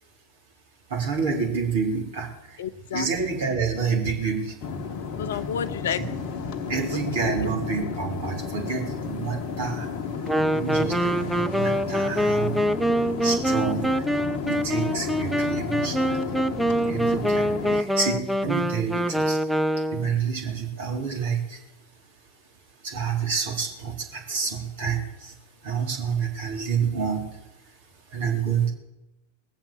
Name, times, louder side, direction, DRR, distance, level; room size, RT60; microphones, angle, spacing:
voice 1, 0.9-2.3 2.9-4.6 5.9-6.0 6.7-9.9 10.5-12.6 13.2-14.0 14.4-16.2 16.9-19.4 19.9-21.6 22.8-25.3 25.6-27.2 28.1-28.7, right 5 dB, 60° right, 0 dB, 3.8 m, -28 dB
voice 2, 2.6-3.1 5.0-6.0 6.9-7.5, left 8 dB, 60° left, 15 dB, 0.6 m, -31 dB
sound 1, 4.6-17.8, left 5 dB, 45° left, 1.1 m, -33 dB
Wind instrument woodwind instrument, 10.3-20.2, equal, ahead, 0.6 m, -25 dB
20.0 x 7.4 x 8.0 m, 0.96 s
figure-of-eight pair, 90°, 0 cm